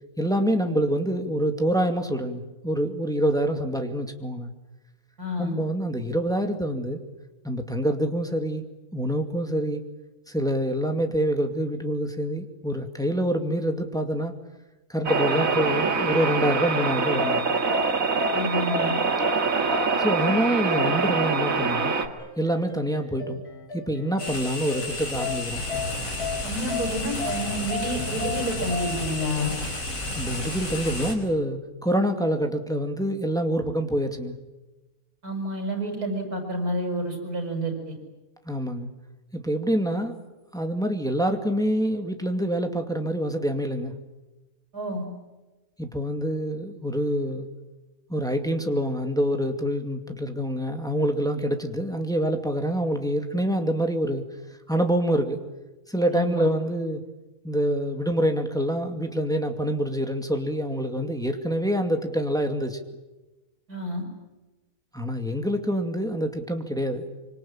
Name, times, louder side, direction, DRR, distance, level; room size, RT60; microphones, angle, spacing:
voice 1, 0.2-4.5 5.4-7.0 7.4-8.6 8.9-9.8 10.3-14.4 14.9-17.4 20.0-21.9 22.4-23.4 23.7-25.6 30.1-34.3 38.5-38.9 39.3-40.2 40.5-43.9 45.8-47.5 48.1-54.2 54.7-55.4 55.9-57.0 57.4-62.8 64.9-67.1, equal, ahead, 4 dB, 2.3 m, -26 dB
voice 2, 5.2-5.5 18.3-18.9 26.4-29.5 35.2-38.0 44.7-45.0 56.1-56.5 63.7-64.0, equal, 80° right, 4 dB, 6.5 m, -29 dB
sound 1, 15.1-22.1, right 4 dB, 65° right, 2.5 m, -24 dB
sound 2, 15.2-29.4, left 6 dB, 85° left, 3.6 m, -36 dB
sound 3, 24.2-31.1, left 1 dB, 60° left, 5.4 m, -32 dB
25.5 x 25.5 x 8.9 m, 1.1 s
omnidirectional pair, 1.6 m